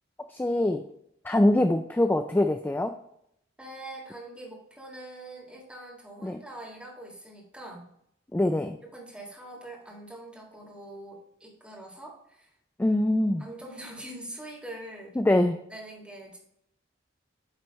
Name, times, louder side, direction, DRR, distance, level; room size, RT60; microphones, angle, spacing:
voice 1, 0.3-0.9 1.2-2.9 6.2-6.4 8.3-8.8 12.8-13.5 15.2-15.6, left 1 dB, 10° left, 6 dB, 0.3 m, -24 dB
voice 2, 3.6-7.8 8.9-12.5 13.4-15.2 15.7-16.4, right 1 dB, 5° right, -3 dB, 1.8 m, -43 dB
9.0 x 3.2 x 4.0 m, 0.74 s
head